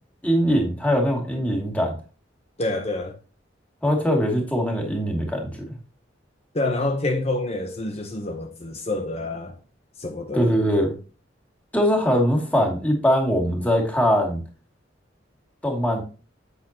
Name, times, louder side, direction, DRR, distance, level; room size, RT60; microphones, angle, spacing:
voice 1, 0.2-1.9 3.8-5.5 10.3-10.9 11.7-14.4 15.6-16.0, equal, 10° left, 2.5 m, -21 dB
voice 2, 2.6-3.1 6.5-9.5 10.0-10.5, left 2 dB, 35° left, 0.9 m, -27 dB
8.3 x 8.1 x 2.9 m
head